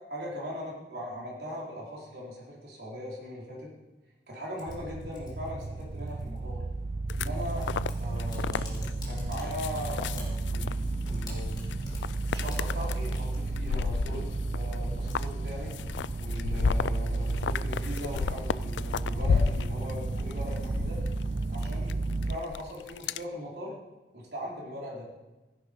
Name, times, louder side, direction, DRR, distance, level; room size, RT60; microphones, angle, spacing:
voice 1, 0.0-3.7 4.3-6.6 7.1-7.7 8.0-10.8 11.1-11.7 12.3-14.3 14.5-15.7 16.2-21.0 21.5-21.9 22.2-23.8 24.1-25.0, equal, 65° right, -4 dB, 4.3 m, -39 dB
Typing, 4.5-22.6, left 2 dB, 25° left, 3.3 m, -52 dB
sound 1, 4.7-22.4, right 2 dB, 40° right, 0.4 m, -33 dB
sound 2, 7.1-23.2, left 5 dB, 90° left, 0.4 m, -34 dB
15.5 x 11.0 x 5.4 m, 1.1 s
head